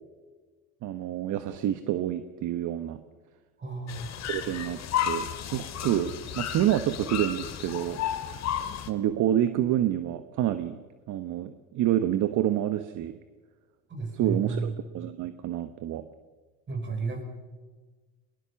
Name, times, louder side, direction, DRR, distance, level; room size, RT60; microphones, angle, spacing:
voice 1, 0.8-3.0 4.3-4.8 5.0-8.0 8.9-10.8 11.1-13.1 14.2-16.0, right 11 dB, 55° right, 10 dB, 1.3 m, -28 dB
voice 2, 3.6-4.3 13.9-14.7 16.7-17.2, right 4 dB, 30° right, 4 dB, 6.3 m, -32 dB
sound 1, 3.9-8.9, left 10 dB, 45° left, 2.3 m, -33 dB
20.5 x 20.5 x 7.1 m, 1.3 s
supercardioid pair, 100°, 36 cm